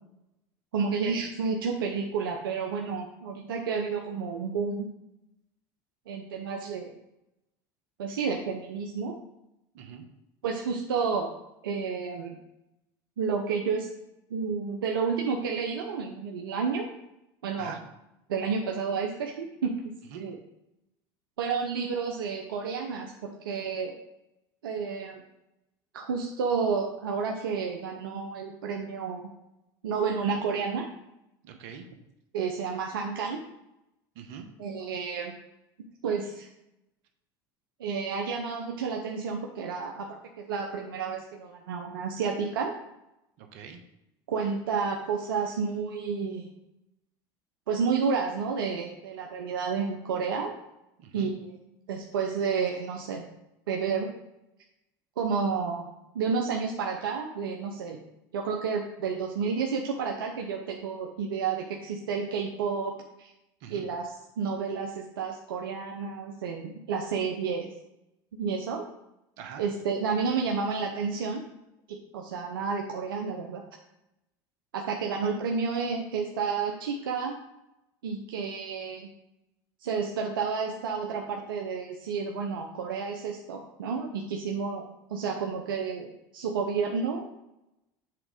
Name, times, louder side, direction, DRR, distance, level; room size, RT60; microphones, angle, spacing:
voice 1, 0.7-4.9 6.1-6.9 8.0-9.2 10.4-11.3 11.6-12.4 13.2-13.9 14.3-16.9 17.4-17.7 18.3-19.8 20.1-20.4 21.4-24.0 24.6-25.2 25.9-29.3 29.8-30.9 32.3-33.4 34.6-35.3 36.0-36.5 37.8-40.1 40.4-42.8 44.3-46.5 47.7-50.5 51.1-51.6 51.9-53.2 53.7-54.1 55.2-55.9 56.1-58.0 58.3-63.3 63.7-67.7 68.3-68.8 69.6-71.4 71.9-73.6 74.7-77.4 78.0-79.1 79.8-84.8 85.1-86.1 86.3-87.3, right 5 dB, 90° right, 1 dB, 0.7 m, -30 dB
voice 2, 9.7-10.1 17.6-17.8 20.1-20.2 31.4-31.9 34.1-34.5 43.4-43.8 51.0-51.3 63.6-63.9 69.4-69.6, right 7 dB, 70° right, 5 dB, 1.1 m, -43 dB
7.8 x 3.7 x 4.8 m, 0.87 s
hypercardioid pair, 85°, 11 cm